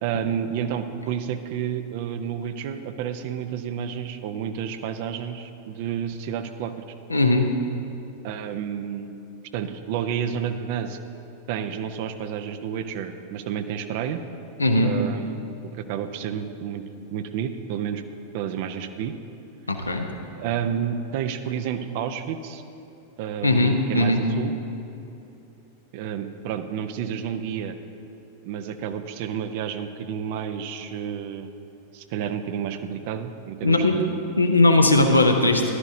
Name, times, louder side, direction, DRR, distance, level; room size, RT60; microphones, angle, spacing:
voice 1, 0.0-6.7 8.2-9.1 9.5-11.0 11.5-14.2 14.8-15.4 15.7-16.8 17.1-18.0 18.3-19.1 20.4-22.6 23.2-24.6 25.9-27.8 28.4-31.5 31.9-34.2, right 8 dB, 50° right, 9 dB, 0.6 m, -30 dB
voice 2, 7.1-7.5 14.6-14.9 19.7-20.1 23.4-24.2 33.6-34.0 34.4-35.6, left 2 dB, 80° left, 4 dB, 0.8 m, -19 dB
14.0 x 11.5 x 2.7 m, 2.9 s
figure-of-eight pair, 90°, 0 cm